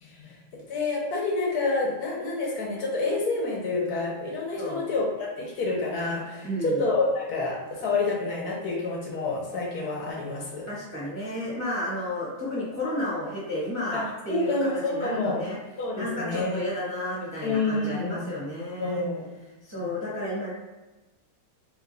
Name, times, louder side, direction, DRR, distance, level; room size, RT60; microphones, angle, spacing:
voice 1, 0.0-10.7 13.9-15.4 15.8-16.6 17.4-18.2 18.8-19.3, left 3 dB, 70° left, -2 dB, 1.2 m, -28 dB
voice 2, 4.6-4.9 6.4-6.9 10.7-15.6 15.9-19.0 19.6-20.5, left 1 dB, 15° right, -8 dB, 0.7 m, -32 dB
3.0 x 2.2 x 3.7 m, 1.1 s
omnidirectional pair, 1.8 m